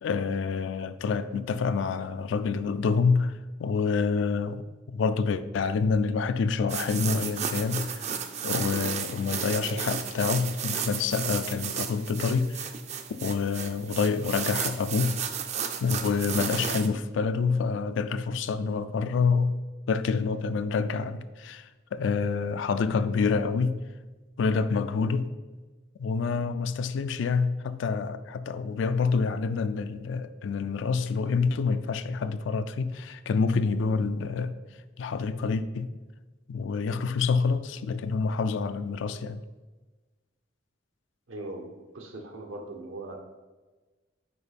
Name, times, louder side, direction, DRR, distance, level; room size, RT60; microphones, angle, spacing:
voice 1, 0.0-8.1 8.4-12.7 13.2-15.2 15.8-19.6 19.9-23.8 24.4-25.3 26.0-34.5 35.0-35.9 36.5-39.4, left 5 dB, 70° left, 0.3 m, -27 dB
sound 1, 6.7-16.9, right 7 dB, 35° right, 0.3 m, -33 dB
voice 2, 41.3-43.2, right 2 dB, 85° right, 0.8 m, -40 dB
5.2 x 4.8 x 4.1 m
head